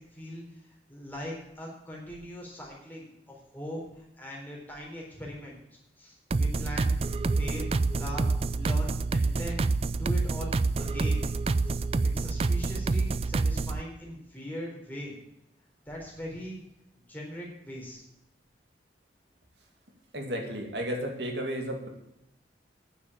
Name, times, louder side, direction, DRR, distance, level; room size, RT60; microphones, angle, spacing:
voice 1, 0.0-7.0 7.3-8.3 8.5-9.7 10.0-10.5 10.8-11.3 11.6-15.1 15.9-16.6 17.1-18.0, equal, 10° left, -3 dB, 3.8 m, -40 dB
sound 1, 6.3-13.8, right 3 dB, 35° right, 0.3 m, -27 dB
voice 2, 20.1-21.9, equal, 75° right, 2 dB, 2.5 m, -33 dB
9.8 x 7.3 x 8.5 m, 0.82 s
head